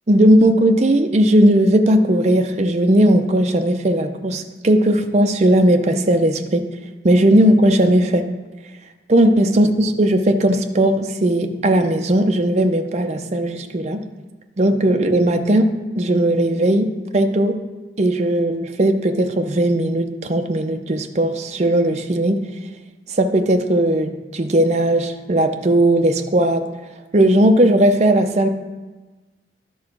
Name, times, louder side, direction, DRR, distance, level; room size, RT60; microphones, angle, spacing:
voice 1, 0.1-6.7 7.0-8.2 9.1-14.0 14.6-17.6 18.0-22.4 23.2-26.6 27.1-28.5, right 1 dB, 35° right, 6 dB, 0.5 m, -17 dB
11.0 x 3.8 x 5.9 m, 1.3 s
head